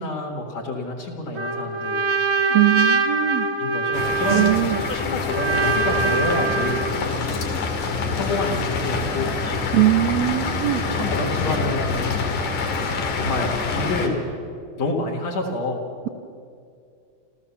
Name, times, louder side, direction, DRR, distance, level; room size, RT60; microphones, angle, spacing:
voice 1, 0.0-2.0 3.6-7.3 7.8-9.4 10.8-12.1 13.1-14.2 14.8-15.8, left 2 dB, 60° left, -2 dB, 2.9 m, -28 dB
Trumpet, 1.3-7.0, right 3 dB, 40° right, 1.2 m, -23 dB
voice 2, 2.5-3.5 4.3-4.8 9.7-10.8, right 15 dB, 75° right, 3 dB, 1.9 m, -20 dB
sound 1, 3.9-14.1, left 4 dB, 85° left, 3.4 m, -26 dB
29.0 x 14.5 x 7.1 m, 2.4 s
omnidirectional pair, 3.6 m